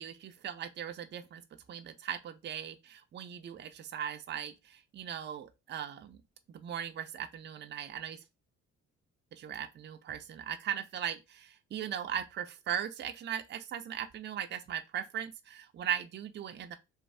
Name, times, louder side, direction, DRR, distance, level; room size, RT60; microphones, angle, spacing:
voice 1, 0.0-1.4 1.7-6.2 6.5-8.2 9.3-16.8, right 9 dB, 35° right, 0.4 m, -38 dB
3.2 x 2.1 x 2.6 m
cardioid pair, 90°, 30 cm